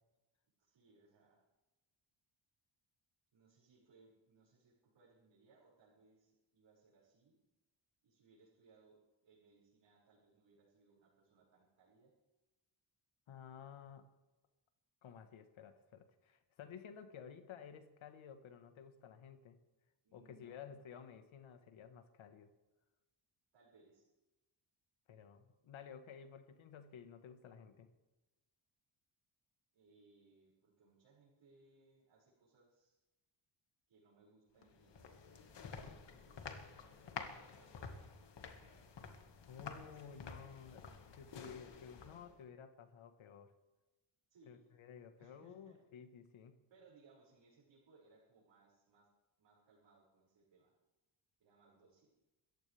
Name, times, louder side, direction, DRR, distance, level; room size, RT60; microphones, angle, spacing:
voice 1, 0.6-1.4 3.3-7.4 8.0-12.1 20.0-20.6 23.5-24.1 29.7-33.0 33.9-37.0 37.5-38.3 38.6-38.9 39.8-40.6 44.3-44.7 45.2-45.8 46.7-49.1 49.4-50.7 51.4-52.1, right 3 dB, 80° right, -8 dB, 6.2 m, -68 dB
voice 2, 13.3-14.1 15.0-19.6 20.1-22.5 25.1-27.9 39.5-40.9 41.1-43.5 44.5-46.6, left 7 dB, 85° left, 8 dB, 1.5 m, -54 dB
sound 1, 34.6-42.4, left 5 dB, 65° left, 1.9 m, -51 dB
26.5 x 15.0 x 3.5 m, 1.1 s
cardioid pair, 115°, 46 cm